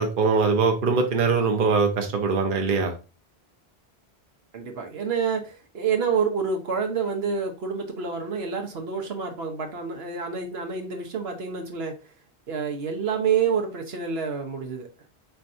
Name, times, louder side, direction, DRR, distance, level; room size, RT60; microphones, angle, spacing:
voice 1, 0.0-2.9, right 4 dB, 55° right, 3 dB, 1.0 m, -22 dB
voice 2, 4.5-11.9 12.5-14.9, right 6 dB, 70° right, 3 dB, 1.2 m, -28 dB
4.6 x 4.4 x 2.6 m, 0.32 s
omnidirectional pair, 1.1 m